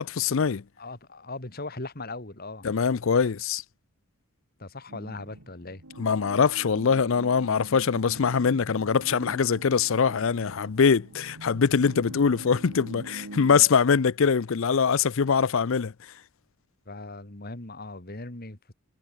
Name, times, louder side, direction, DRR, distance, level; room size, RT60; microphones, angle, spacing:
voice 1, 0.0-0.6 2.6-3.6 6.0-16.1, left 6 dB, 60° left, 0.5 m, -23 dB
voice 2, 0.8-2.7 4.6-5.8 16.9-18.7, left 2 dB, 45° left, 2.3 m, -39 dB
sound 1, 4.9-13.7, right 2 dB, 90° right, 2.4 m, -44 dB
head